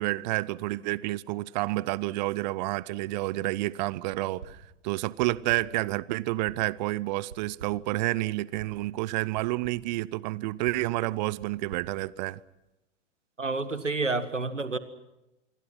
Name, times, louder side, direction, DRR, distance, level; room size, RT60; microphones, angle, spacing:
voice 1, 0.0-12.4, right 19 dB, 40° right, 0.8 m, -29 dB
sound 1, 4.4-4.8 5.2-5.9 6.5-6.8 7.3-8.0 8.6-8.9 9.4-9.9 10.7-12.7, right 7 dB, 65° right, 3.6 m, -49 dB
voice 2, 13.4-14.8, right 3 dB, 85° right, 1.8 m, -29 dB
27.0 x 23.5 x 6.0 m
figure-of-eight pair, 100°, 36 cm